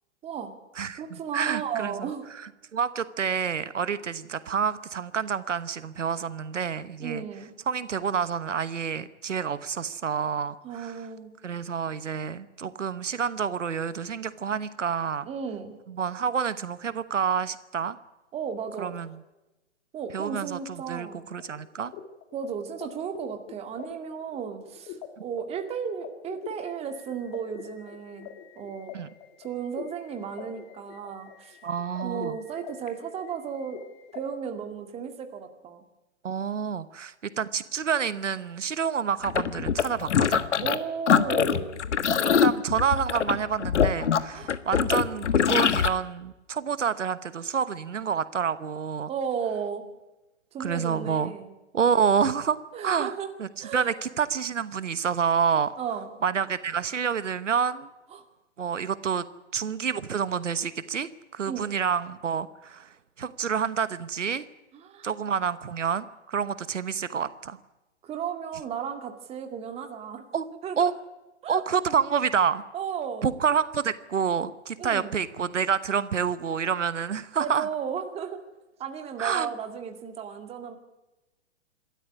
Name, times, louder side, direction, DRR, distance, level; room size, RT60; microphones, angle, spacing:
voice 1, 0.2-0.6 1.0-2.2 7.0-7.5 10.6-11.3 15.3-15.8 18.3-19.0 19.9-21.2 22.3-25.0 25.2-28.3 28.6-28.9 29.4-31.6 32.0-33.8 34.1-35.8 36.5-36.7 40.6-41.8 44.3-44.5 49.1-49.8 50.5-51.5 52.7-53.3 53.6-53.9 55.8-56.1 58.1-58.2 61.5-61.7 64.7-65.1 68.0-70.2 70.6-70.9 71.4-71.6 72.7-73.3 74.8-75.2 77.4-78.4 78.8-80.8, right 7 dB, 15° right, 6 dB, 2.2 m, -34 dB
voice 2, 0.8-2.1 2.7-7.2 7.7-11.0 11.4-15.3 15.9-18.0 18.8-19.2 20.1-21.9 28.9-29.1 31.6-32.4 36.2-40.4 42.2-49.1 50.6-51.3 51.7-52.6 52.8-55.7 56.2-57.9 58.6-59.2 59.5-62.9 63.2-64.4 65.0-67.6 70.3-70.4 70.8-70.9 71.5-72.6 73.2-77.7 79.2-79.5, right 7 dB, 85° right, 15 dB, 1.2 m, -28 dB
sound 1, 21.4-34.2, left 9 dB, 30° left, 2.3 m, -45 dB
sound 2, 39.2-40.8 41.1-45.9, left 7 dB, 75° left, 1.5 m, -23 dB
26.5 x 13.0 x 9.8 m, 1.0 s
hypercardioid pair, 135°, 36 cm